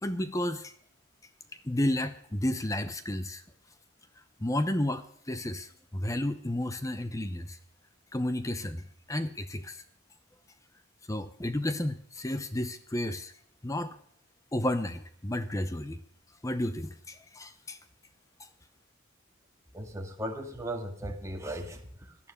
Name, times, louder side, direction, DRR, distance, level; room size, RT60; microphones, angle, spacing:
voice 1, 0.0-0.7 1.6-3.4 4.4-7.6 8.1-9.8 11.1-13.3 13.6-14.0 14.5-16.0 16.4-17.8 18.4-18.5, left 1 dB, 15° left, 11 dB, 0.7 m, -32 dB
voice 2, 19.7-22.2, right 1 dB, 15° right, 2 dB, 2.0 m, -37 dB
18.0 x 11.0 x 6.7 m, 0.65 s
head